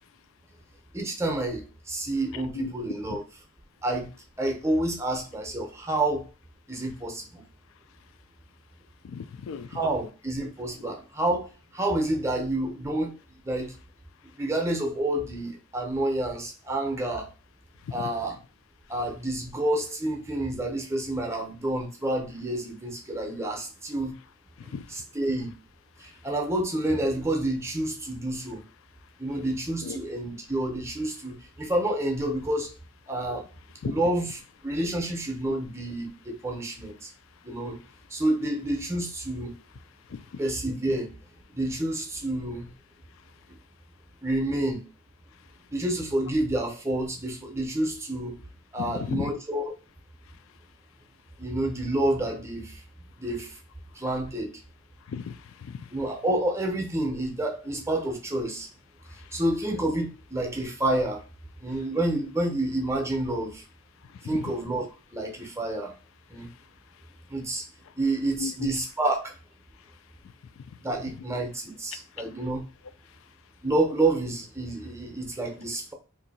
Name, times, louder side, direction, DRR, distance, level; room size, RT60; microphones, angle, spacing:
voice 1, 0.9-3.2 3.8-4.1 4.4-6.3 6.7-7.4 9.7-13.1 13.4-13.7 14.4-17.3 17.9-18.4 18.9-24.2 24.6-25.6 26.0-28.6 29.2-32.7 33.1-33.5 33.8-37.1 37.4-37.8 38.1-39.6 40.4-41.2 41.5-42.7 44.2-44.8 45.7-48.4 48.7-49.7 51.4-52.8 53.2-53.6 53.9-54.5 55.9-58.7 59.3-61.2 61.6-63.6 64.2-64.9 65.1-65.9 66.3-66.5 67.3-67.6 68.0-69.3 70.8-72.7 73.6-75.9, right 1 dB, 15° right, 0.6 m, -29 dB
voice 2, 2.3-2.7 3.1-3.2 9.1-9.8 17.9-18.0 24.7-24.8 29.8-30.0 33.8-33.9 40.1-40.2 48.8-49.3 55.1-55.8 64.2-64.4 68.4-68.7, left 5 dB, 70° left, 0.3 m, -34 dB
2.6 x 2.6 x 4.0 m
head